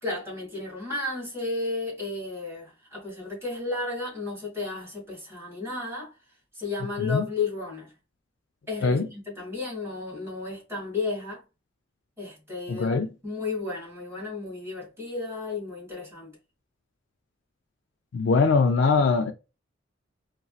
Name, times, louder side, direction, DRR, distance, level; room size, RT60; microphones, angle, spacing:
voice 1, 0.0-6.1 6.6-7.9 8.7-11.4 12.2-13.0 13.2-16.4, left 3 dB, 15° right, 2.0 m, -33 dB
voice 2, 12.7-13.1 18.1-19.3, left 4 dB, 70° left, 0.4 m, -22 dB
4.1 x 2.6 x 2.3 m
head